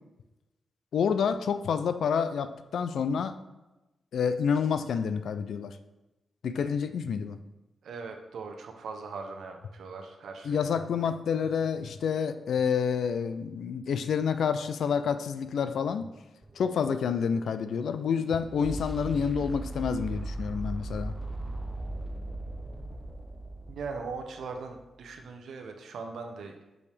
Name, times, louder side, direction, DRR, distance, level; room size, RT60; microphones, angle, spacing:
voice 1, 0.9-3.4 4.1-5.8 6.4-7.4 10.5-16.1 16.6-21.1, left 6 dB, 75° left, 11 dB, 0.4 m, -28 dB
voice 2, 7.8-10.7 23.7-26.6, right 4 dB, 80° right, 5 dB, 0.8 m, -40 dB
sound 1, 16.4-24.5, right 1 dB, 15° right, 0.4 m, -38 dB
6.4 x 5.4 x 3.5 m, 1.0 s
wide cardioid pair, 115°, 0 cm